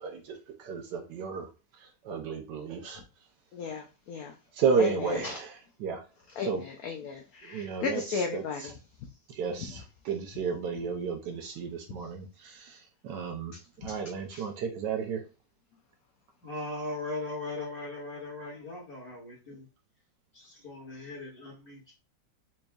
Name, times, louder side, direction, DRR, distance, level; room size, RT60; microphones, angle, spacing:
voice 1, 0.0-3.3 4.5-6.0 6.4-6.6 7.4-8.7 9.3-15.2, right 5 dB, 75° right, 4 dB, 1.1 m, -33 dB
voice 2, 3.5-4.3 4.8-4.9 5.2-5.4 6.4-6.5 6.8-8.6 13.8-13.9 14.3-14.4, left 5 dB, 80° left, 2 dB, 0.8 m, -35 dB
voice 3, 16.4-19.7 20.3-21.9, left 2 dB, 30° left, -6 dB, 1.7 m, -39 dB
4.3 x 3.0 x 2.3 m, 0.31 s
omnidirectional pair, 2.1 m